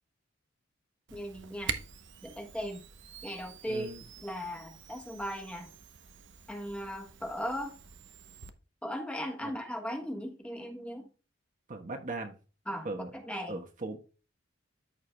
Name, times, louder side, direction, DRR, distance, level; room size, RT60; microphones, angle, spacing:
voice 1, 1.1-1.7 2.2-2.8 3.2-3.9 4.2-5.7 6.5-7.7 8.8-11.1 12.7-12.9 13.1-13.6, equal, 5° left, 1.4 m, -37 dB
Camera, 1.1-8.5, right 7 dB, 65° right, 0.8 m, -45 dB
voice 2, 3.7-4.0 9.4-9.5 11.7-12.4 12.8-13.1 13.5-14.0, right 2 dB, 40° right, 1.1 m, -38 dB
13.5 x 4.7 x 2.2 m
head